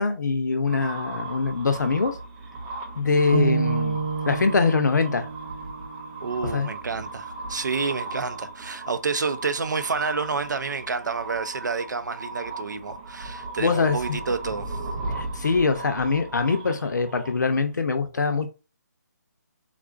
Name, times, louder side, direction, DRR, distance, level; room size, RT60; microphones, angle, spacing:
voice 1, 0.0-2.2 3.0-5.3 6.5-6.7 13.6-14.0 15.2-18.5, left 4 dB, 75° left, 0.6 m, -23 dB
sound 1, 0.7-17.7, right 2 dB, 15° right, 0.3 m, -37 dB
sound 2, 3.3-7.5, right 5 dB, 30° right, 0.8 m, -30 dB
voice 2, 6.2-14.8, right 4 dB, 80° right, 0.5 m, -29 dB
3.6 x 2.4 x 2.4 m
figure-of-eight pair, 155°, 10 cm